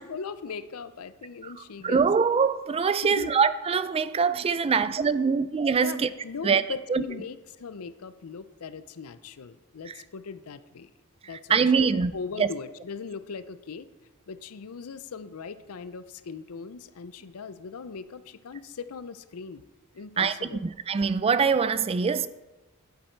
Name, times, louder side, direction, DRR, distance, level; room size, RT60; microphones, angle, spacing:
voice 1, 0.0-2.1 3.0-3.3 5.8-10.9 11.2-13.9 14.3-19.6 19.9-20.6, left 5 dB, 70° left, 0.5 m, -39 dB
voice 2, 1.8-6.1 6.4-6.6 6.9-7.0 9.9-10.0 11.5-12.1 12.4-12.5 20.2-20.3 20.6-22.3, right 5 dB, 25° right, 0.3 m, -23 dB
9.6 x 8.3 x 4.5 m
head